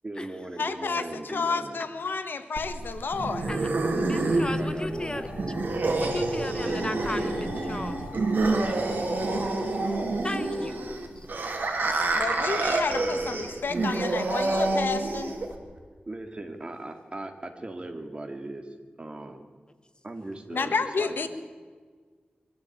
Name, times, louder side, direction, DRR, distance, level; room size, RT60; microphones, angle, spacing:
voice 1, 0.0-1.8 4.1-5.8 8.4-10.3 16.1-19.4 20.0-21.3, right 2 dB, 30° right, 6 dB, 2.4 m, -39 dB
voice 2, 0.6-1.0 1.3-3.5 12.1-15.3 20.5-21.3, left 4 dB, 85° left, 9 dB, 1.5 m, -30 dB
sound 1, 2.6-15.6, right 2 dB, 65° right, 3.1 m, -28 dB
voice 3, 3.5-5.3 6.0-8.0 10.2-10.9 11.2-11.3, left 2 dB, 25° left, 10 dB, 1.1 m, -36 dB
sound 2, 4.9-11.3, left 3 dB, 70° left, 2.7 m, -42 dB
23.5 x 14.0 x 8.7 m, 1.5 s
wide cardioid pair, 110°, 3 cm